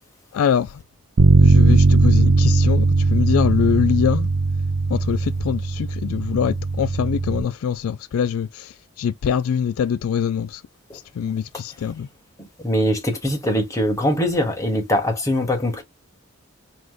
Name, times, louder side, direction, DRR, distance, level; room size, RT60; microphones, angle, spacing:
voice 1, 0.3-0.8 1.4-4.3 4.9-10.6 10.9-12.1, left 7 dB, 80° left, 0.3 m, -23 dB
Bass guitar, 1.2-7.4, right 3 dB, 65° right, 0.4 m, -18 dB
voice 2, 12.4-15.8, equal, 15° left, 1.2 m, -22 dB
4.8 x 2.1 x 3.8 m
head